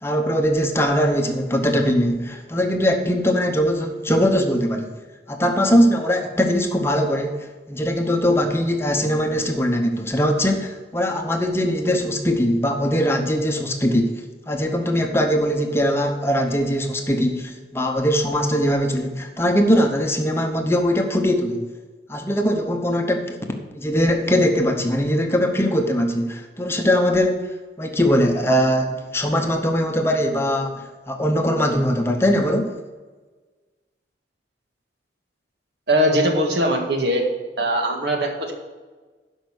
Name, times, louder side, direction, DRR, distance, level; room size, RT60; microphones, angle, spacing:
voice 1, 0.0-5.0 5.3-21.7 22.1-23.4 23.7-27.5 27.8-32.8, equal, 15° left, 4 dB, 0.9 m, -21 dB
voice 2, 35.9-37.2 37.6-38.5, equal, 70° right, 2 dB, 1.8 m, -20 dB
11.5 x 5.4 x 6.4 m, 1.3 s
head